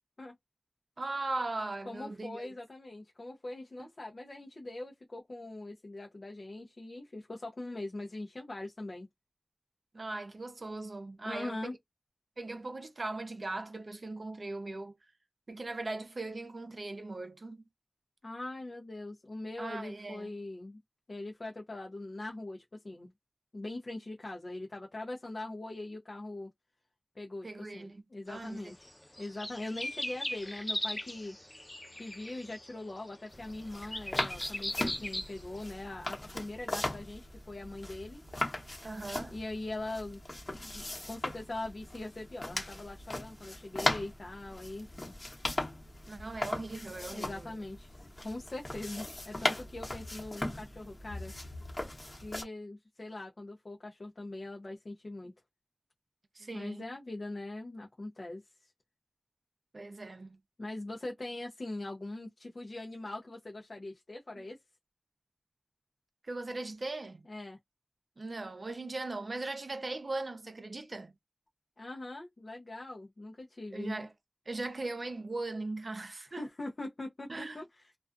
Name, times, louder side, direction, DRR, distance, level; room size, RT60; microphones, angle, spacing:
voice 1, 1.0-2.4 9.9-11.6 12.4-14.9 15.5-17.6 19.6-20.3 27.4-28.0 28.3-28.6 38.8-39.4 46.1-47.5 56.4-56.9 59.7-60.4 64.4-64.5 66.3-67.2 68.2-71.1 73.7-74.1 74.5-76.4 77.3-77.6, right 2 dB, 65° right, 0.5 m, -39 dB
voice 2, 1.9-9.1 11.2-11.7 18.2-20.8 21.1-23.1 23.5-26.5 27.2-28.9 29.2-31.4 32.0-38.2 39.3-40.2 40.6-45.1 47.1-51.3 52.2-55.3 56.5-58.7 60.6-64.6 67.3-67.6 71.8-74.1 76.3-78.0, left 2 dB, 65° left, 0.6 m, -42 dB
sound 1, 28.3-28.4 28.7-35.7, left 1 dB, 25° left, 0.6 m, -39 dB
sound 2, 33.3-52.4, left 1 dB, 45° left, 1.0 m, -38 dB
2.3 x 2.3 x 2.4 m
wide cardioid pair, 65°, 0 cm